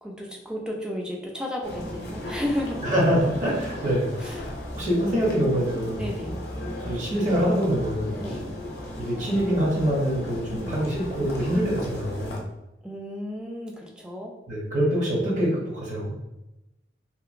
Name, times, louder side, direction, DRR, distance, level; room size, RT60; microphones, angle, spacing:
voice 1, 0.0-2.9 4.2-4.5 4.8-5.2 6.0-6.4 8.2-8.4 10.5-10.7 12.8-14.3, left 1 dB, 5° right, 0 dB, 0.4 m, -33 dB
sound 1, 1.6-12.4, left 1 dB, 65° left, 0.6 m, -35 dB
voice 2, 2.8-4.1 4.7-6.0 6.8-8.2 9.0-12.4 14.5-16.1, equal, 45° right, -4 dB, 0.8 m, -25 dB
2.8 x 2.5 x 2.5 m, 0.97 s
head